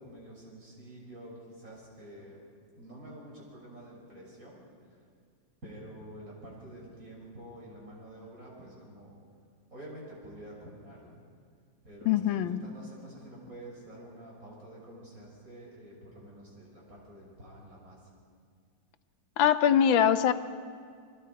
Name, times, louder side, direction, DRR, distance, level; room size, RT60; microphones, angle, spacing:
voice 1, 0.0-2.5 2.8-4.6 4.9-5.0 5.6-9.2 9.7-11.2 11.8-18.1, right 1 dB, 45° right, -4 dB, 6.8 m, -48 dB
voice 2, 12.0-12.6 19.4-20.3, left 9 dB, 90° left, 12 dB, 1.6 m, -23 dB
30.0 x 21.0 x 4.7 m, 2.1 s
omnidirectional pair, 2.1 m